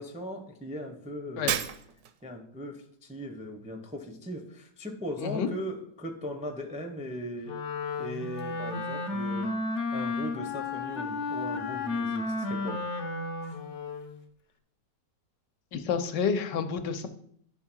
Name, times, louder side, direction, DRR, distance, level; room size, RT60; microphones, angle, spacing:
voice 1, 0.0-1.5 2.2-7.6 8.0-9.5 9.9-12.8 13.4-13.6, equal, 10° right, 4 dB, 0.4 m, -38 dB
Shatter, 1.5-2.3, right 9 dB, 70° right, 1.0 m, -31 dB
voice 2, 5.2-5.5 15.7-17.1, left 6 dB, 80° left, 8 dB, 1.4 m, -29 dB
Wind instrument woodwind instrument, 7.4-14.1, left 3 dB, 55° left, 0.9 m, -33 dB
10.5 x 3.7 x 6.2 m, 0.66 s
omnidirectional pair, 1.9 m